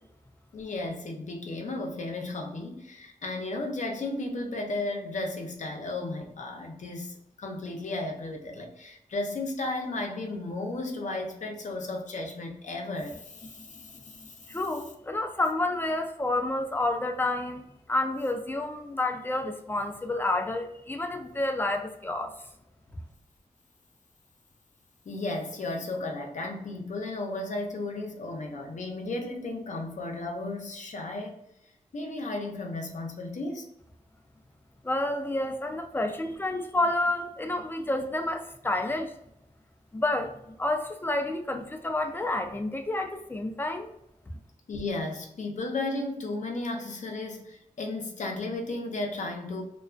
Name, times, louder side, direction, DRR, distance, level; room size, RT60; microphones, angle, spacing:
voice 1, 0.5-14.3 25.1-31.4 31.9-33.7 44.7-49.6, left 2 dB, 65° left, 2 dB, 0.6 m, -34 dB
voice 2, 14.5-22.3 34.8-39.1 39.9-43.9, left 2 dB, 15° left, 5 dB, 0.4 m, -29 dB
2.3 x 2.2 x 2.4 m, 0.78 s
cardioid pair, 65°, 14 cm